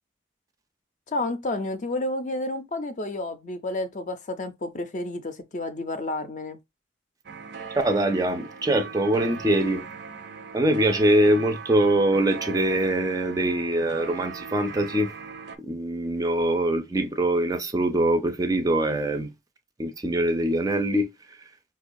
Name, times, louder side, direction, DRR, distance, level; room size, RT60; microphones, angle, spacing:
voice 1, 1.1-6.6, left 2 dB, 40° left, 0.4 m, -30 dB
sound 1, 7.2-15.6, right 5 dB, 75° right, 0.5 m, -39 dB
voice 2, 7.8-9.9 10.5-15.1 15.6-19.3 19.8-21.1, right 1 dB, 20° right, 0.4 m, -23 dB
4.9 x 2.2 x 2.6 m
head